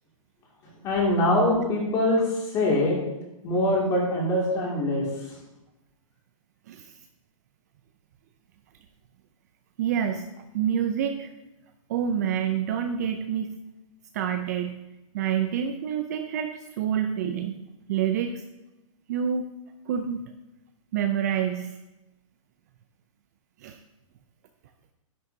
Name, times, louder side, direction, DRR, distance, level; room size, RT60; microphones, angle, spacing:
voice 1, 0.8-3.0 3.4-5.1, left 1 dB, 20° left, -2 dB, 2.3 m, -23 dB
voice 2, 6.7-7.0 9.8-10.3 10.5-11.3 11.9-13.6 14.1-14.8 15.1-17.6 17.9-18.4 19.1-19.5 19.9-20.2 20.9-21.8 23.6-23.8, right 8 dB, 30° right, 7 dB, 0.4 m, -27 dB
11.0 x 10.5 x 2.7 m, 0.96 s
hypercardioid pair, 165°, 17 cm